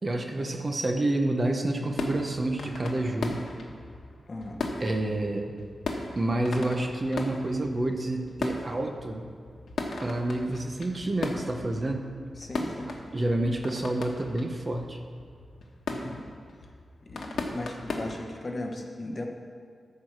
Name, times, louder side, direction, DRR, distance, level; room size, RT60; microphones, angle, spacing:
voice 1, 0.0-3.4 4.8-5.5 6.1-9.3 10.0-12.1 13.1-15.0, right 1 dB, 30° right, 3 dB, 0.8 m, -28 dB
sound 1, 1.9-18.4, left 3 dB, 75° left, 1.1 m, -38 dB
voice 2, 4.3-4.6 12.4-12.9 15.9-16.2 17.0-19.3, left 1 dB, 30° left, 2 dB, 1.1 m, -37 dB
13.0 x 4.7 x 6.1 m, 2.2 s
wide cardioid pair, 140°, 0 cm